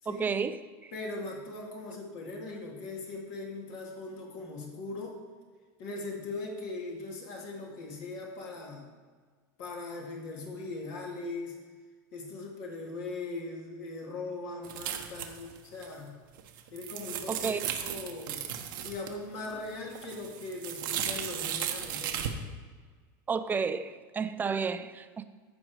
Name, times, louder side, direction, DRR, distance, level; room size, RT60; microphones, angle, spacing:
voice 1, 0.1-0.9 17.3-17.6 23.3-25.2, right 5 dB, 15° right, 0.5 m, -32 dB
voice 2, 0.9-5.2 5.8-8.9 9.6-11.6 12.1-16.1 16.7-18.4 18.8-22.4, left 3 dB, 60° left, 2.1 m, -40 dB
sound 1, 14.6-15.6 15.8-15.9 16.4-19.1 19.5-22.3, right 10 dB, 85° right, 1.1 m, -35 dB
14.5 x 5.2 x 4.7 m
supercardioid pair, 130°, 11 cm